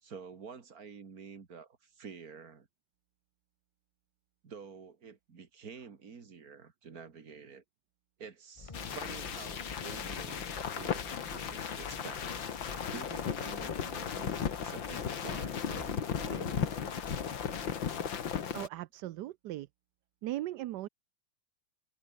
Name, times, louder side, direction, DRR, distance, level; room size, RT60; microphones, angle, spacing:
voice 1, 0.0-2.7 4.4-7.6 8.2-16.6, right 5 dB, 50° right, 2.5 m, -49 dB
sound 1, 8.6-17.8, left 4 dB, 25° left, 0.7 m, -50 dB
sound 2, 8.7-18.7, left 7 dB, 85° left, 2.5 m, -36 dB
voice 2, 18.5-19.7 20.2-20.9, right 15 dB, 70° right, 1.2 m, -38 dB
omnidirectional pair, 2.0 m